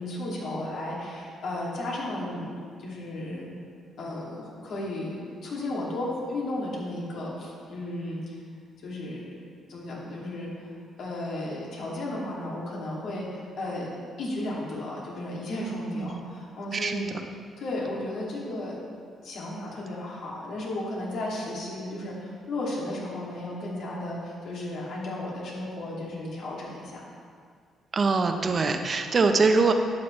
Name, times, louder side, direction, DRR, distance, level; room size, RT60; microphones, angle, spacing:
voice 1, 0.0-3.5 4.0-8.4 8.8-10.7 11.0-13.9 14.2-17.1 17.6-18.8 19.2-27.0, left 1 dB, 70° left, -4 dB, 2.5 m, -34 dB
voice 2, 16.7-17.0 27.9-29.7, right 4 dB, 40° right, 6 dB, 0.8 m, -23 dB
11.5 x 8.4 x 3.3 m, 2.1 s
cardioid pair, 90°, 0 cm